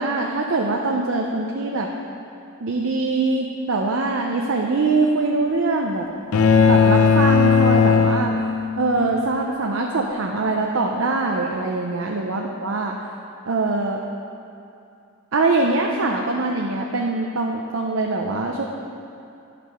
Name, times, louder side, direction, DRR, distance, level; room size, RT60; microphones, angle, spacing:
voice 1, 0.0-1.9 2.6-6.1 6.7-8.5 8.8-13.0 13.5-14.0 15.3-18.6, right 3 dB, 65° right, 0 dB, 0.6 m, -23 dB
sound 1, 6.3-8.9, left 5 dB, 85° left, 0.5 m, -16 dB
11.0 x 5.0 x 5.8 m, 2.6 s
head